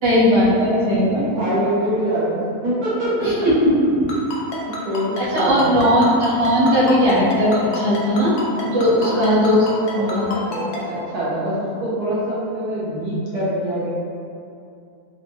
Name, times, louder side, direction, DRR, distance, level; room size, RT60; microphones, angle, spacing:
voice 1, 0.0-1.5 3.2-3.5 5.2-8.3 8.6-9.7 9.9-10.3, equal, 25° right, -11 dB, 0.7 m, -18 dB
voice 2, 1.1-3.7 4.5-5.8 9.0-9.2 9.9-13.9, right 1 dB, 85° right, -9 dB, 1.5 m, -24 dB
Ringtone, 4.1-10.8, left 2 dB, 75° left, 1.1 m, -29 dB
4.0 x 2.2 x 2.9 m, 2.6 s
omnidirectional pair, 1.6 m